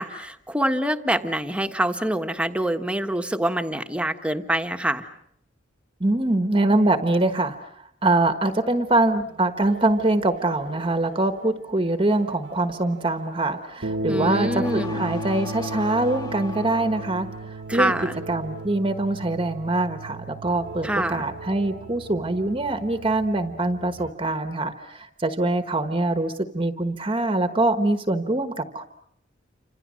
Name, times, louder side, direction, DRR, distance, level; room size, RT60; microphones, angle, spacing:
voice 1, 0.0-5.1 14.1-15.0 17.7-18.2 20.8-21.3, right 1 dB, 5° right, 7 dB, 1.3 m, -25 dB
voice 2, 6.0-17.9 18.3-28.8, right 2 dB, 25° right, 7 dB, 1.3 m, -24 dB
sound 1, 9.2-24.1, right 1 dB, 85° right, 1.4 m, -36 dB
sound 2, 14.6-17.3 17.8-18.3, left 4 dB, 25° left, 3.7 m, -39 dB
29.5 x 26.5 x 6.4 m, 0.75 s
head